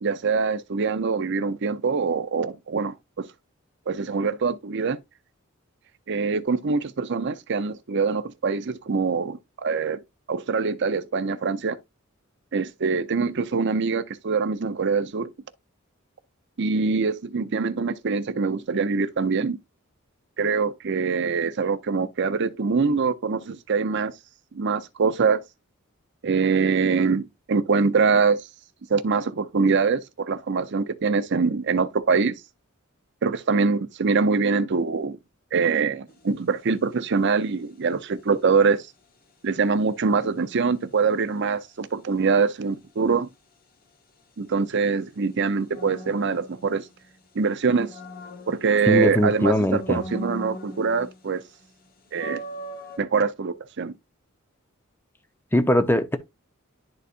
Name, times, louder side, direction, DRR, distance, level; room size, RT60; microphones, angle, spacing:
voice 1, 0.0-3.3 3.9-5.0 6.1-10.0 10.3-11.8 12.5-15.3 16.6-19.6 20.4-24.1 24.5-25.4 26.2-28.5 28.9-32.4 33.2-35.2 35.5-38.9 39.4-43.3 44.4-46.9 47.3-47.9 48.5-51.4 52.1-52.4 53.0-53.9, right 5 dB, 55° right, 0.6 m, -24 dB
sound 1, 36.1-36.4 45.7-47.2 47.6-49.2 49.7-51.3 51.6-51.7 52.1-53.0, equal, 45° left, 1.1 m, -39 dB
voice 2, 48.9-50.0 55.5-56.2, equal, 10° left, 0.7 m, -21 dB
11.5 x 4.0 x 2.5 m
head